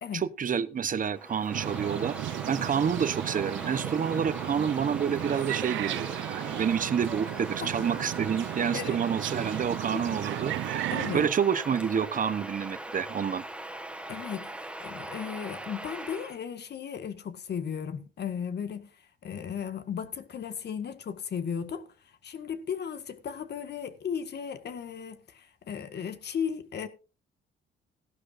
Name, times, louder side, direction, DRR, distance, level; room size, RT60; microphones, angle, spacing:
voice 1, 0.1-2.2 2.5-10.9 11.1-13.4, right 7 dB, 40° right, 0.9 m, -28 dB
Bird vocalization bird call bird song, 1.1-16.4, right 1 dB, 5° right, 1.2 m, -40 dB
sound 1, 1.5-11.3, right 14 dB, 75° right, 0.6 m, -35 dB
voice 2, 9.9-10.2 10.9-11.2 14.1-18.9 19.2-21.9 22.2-26.9, left 7 dB, 55° left, 1.7 m, -35 dB
16.5 x 11.5 x 2.6 m
cardioid pair, 90°, 20 cm